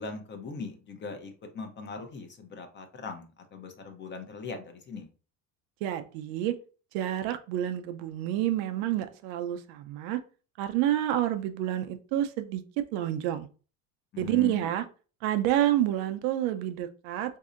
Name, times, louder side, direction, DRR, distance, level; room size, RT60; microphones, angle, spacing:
voice 1, 0.0-5.1 14.1-14.7, left 4 dB, 35° left, 6 dB, 0.7 m, -40 dB
voice 2, 5.8-6.6 6.9-10.2 10.6-12.6 12.9-13.5 14.2-14.8 15.2-17.4, right 12 dB, 85° right, 8 dB, 0.6 m, -28 dB
4.1 x 2.7 x 2.5 m, 0.37 s
cardioid pair, 135°, 34 cm